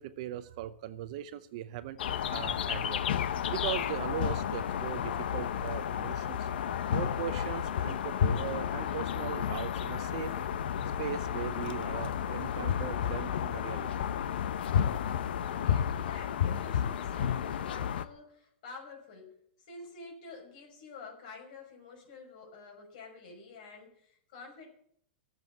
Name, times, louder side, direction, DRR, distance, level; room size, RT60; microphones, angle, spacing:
voice 1, 0.0-2.0 2.3-6.5 6.9-10.3 11.0-14.0, right 12 dB, 40° right, 0.6 m, -39 dB
sound 1, 2.0-18.0, left 9 dB, 65° left, 0.9 m, -32 dB
voice 2, 15.5-19.4 19.7-24.7, left 4 dB, 45° left, 5.9 m, -49 dB
14.0 x 7.7 x 9.2 m
supercardioid pair, 175°, 6 cm